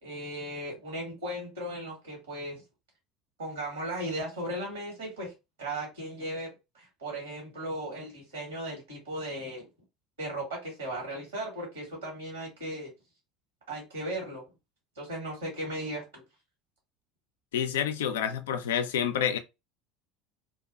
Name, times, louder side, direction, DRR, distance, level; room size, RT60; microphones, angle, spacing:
voice 1, 0.0-2.6 3.4-5.3 5.6-9.7 10.2-12.9 13.7-14.4 15.0-16.2, right 1 dB, 75° right, 1.2 m, -36 dB
voice 2, 17.5-19.4, left 8 dB, 65° left, 0.3 m, -28 dB
2.4 x 2.3 x 2.3 m
figure-of-eight pair, 70°, 0 cm